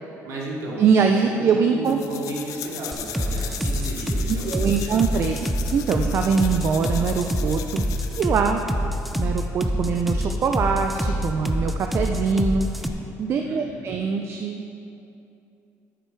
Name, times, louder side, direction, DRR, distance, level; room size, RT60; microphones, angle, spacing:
voice 1, 0.2-1.1 1.4-5.1 13.4-14.0, right 2 dB, 65° right, -4 dB, 2.6 m, -34 dB
voice 2, 0.8-2.0 4.3-5.4 5.7-7.8 8.2-8.6 9.2-14.6, right 5 dB, 45° right, 4 dB, 0.5 m, -23 dB
sound 1, 1.8-8.3, left 10 dB, 75° left, 0.7 m, -37 dB
sound 2, 2.9-12.9, equal, ahead, 0.6 m, -25 dB
10.5 x 9.1 x 4.6 m, 2.8 s
cardioid pair, 130°, 6 cm